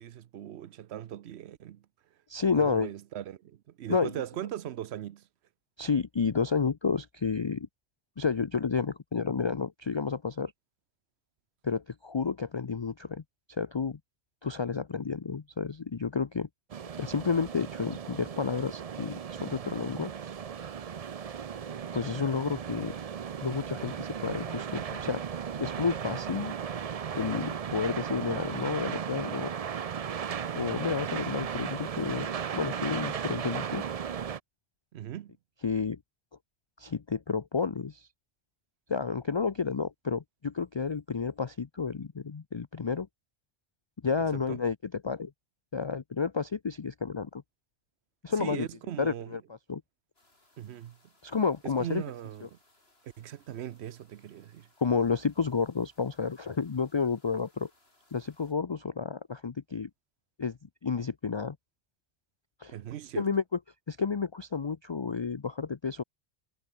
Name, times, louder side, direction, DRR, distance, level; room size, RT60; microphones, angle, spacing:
voice 1, 0.0-1.8 2.6-5.3 34.9-35.4 44.3-44.6 48.4-49.4 50.6-51.0 51.8-52.6 53.2-54.7 62.7-63.3, right 11 dB, 90° right, 0.9 m, -39 dB
voice 2, 2.3-2.9 3.9-4.1 5.8-7.7 8.2-10.5 11.6-13.2 13.5-14.0 14.4-16.5 17.0-20.1 21.9-22.9 23.4-25.2 25.6-26.5 27.1-29.5 30.5-33.8 35.6-36.0 36.8-38.1 38.9-43.1 44.0-45.3 45.7-47.4 48.2-48.7 49.0-49.4 49.7-49.8 51.2-52.0 54.8-57.7 58.1-59.9 60.4-61.6 62.6-62.7 63.1-63.4 63.9-66.0, left 5 dB, 35° left, 0.5 m, -31 dB
sound 1, 16.7-34.4, right 7 dB, 45° right, 0.6 m, -36 dB
sound 2, 50.1-58.5, left 2 dB, 75° left, 5.1 m, -67 dB
omnidirectional pair, 1.1 m